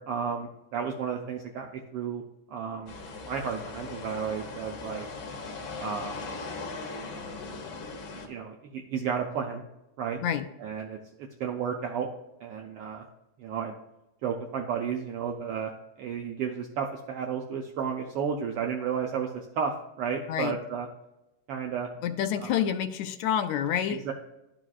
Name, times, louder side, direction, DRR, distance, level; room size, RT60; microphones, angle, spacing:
voice 1, 0.0-2.2 2.5-2.9 3.2-5.0 5.8-6.2 7.1-7.5 8.3-9.6 10.0-10.2 10.6-12.1 12.4-13.1 13.4-13.8 14.2-15.7 16.0-20.9 21.5-21.9 22.4-22.6 23.9-24.1, right 7 dB, 80° right, 1 dB, 1.3 m, -33 dB
sound 1, 2.9-8.3, left 3 dB, 60° left, 1.4 m, -39 dB
voice 2, 22.0-24.0, left 9 dB, 75° left, 8 dB, 1.8 m, -28 dB
12.0 x 5.0 x 2.4 m, 0.95 s
omnidirectional pair, 3.4 m